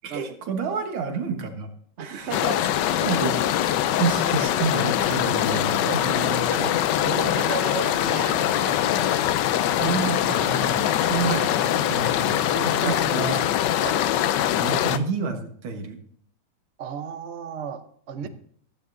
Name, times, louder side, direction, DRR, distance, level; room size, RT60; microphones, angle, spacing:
voice 1, 0.0-1.7 2.0-2.4 2.9-3.3 3.6-6.5 9.8-12.4 12.6-13.4 14.5-16.0 18.2-18.3, right 5 dB, 85° right, 5 dB, 2.3 m, -29 dB
voice 2, 2.0-2.9 5.5-5.6 5.8-6.1 6.5-9.2 11.2-11.5 12.5-13.1 13.8-14.1 16.8-18.3, right 7 dB, 55° right, 9 dB, 0.7 m, -35 dB
sound 1, 2.2-13.8, left 3 dB, 45° left, 1.6 m, -41 dB
sound 2, 2.3-15.0, left 11 dB, 70° left, 1.1 m, -23 dB
15.5 x 13.0 x 2.6 m, 0.64 s
omnidirectional pair, 2.2 m